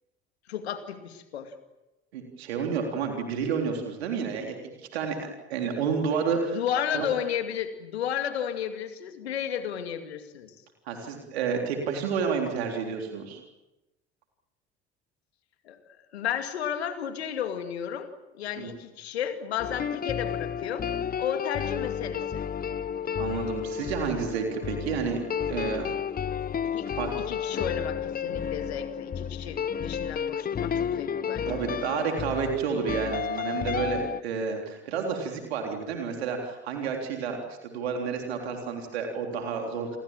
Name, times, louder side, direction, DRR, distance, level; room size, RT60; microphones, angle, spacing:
voice 1, 0.5-1.5 6.5-10.5 15.6-15.8 16.1-18.1 18.3-20.9 21.2-22.4 26.6-26.9 27.2-31.6, left 9 dB, 75° left, 8 dB, 2.4 m, -33 dB
voice 2, 2.1-6.6 6.9-7.1 10.9-13.4 18.6-18.7 23.2-25.2 25.5-25.9 27.0-27.2 31.5-40.0, right 6 dB, 75° right, 3 dB, 3.7 m, -30 dB
sound 1, 19.6-34.2, left 8 dB, 30° left, 0.9 m, -32 dB
29.5 x 23.0 x 7.4 m, 1.0 s
figure-of-eight pair, 55°, 32 cm